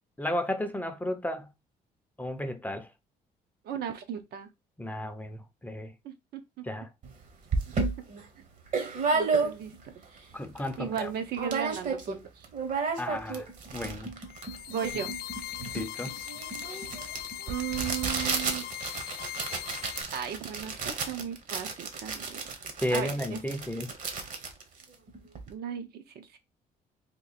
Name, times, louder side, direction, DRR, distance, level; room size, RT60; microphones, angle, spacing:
voice 1, 0.2-1.5 2.2-2.9 4.8-5.9 6.6-6.9 10.3-11.1 13.0-13.5 13.7-14.1 15.7-16.1 22.8-23.9, left 1 dB, 10° left, 0.5 m, -33 dB
voice 2, 3.6-4.5 6.0-6.4 9.1-9.7 10.8-12.5 14.7-15.1 17.5-18.7 20.1-22.4 22.9-23.4 25.5-26.4, right 9 dB, 70° right, 0.7 m, -36 dB
sound 1, 7.0-7.1 7.5-9.9 10.3-10.4 10.6-11.0 11.3-12.2 12.4-25.5, right 4 dB, 50° right, 0.9 m, -32 dB
sound 2, 14.3-20.0, left 12 dB, 65° left, 0.4 m, -40 dB
3.0 x 2.5 x 4.0 m
cardioid pair, 100°, 17 cm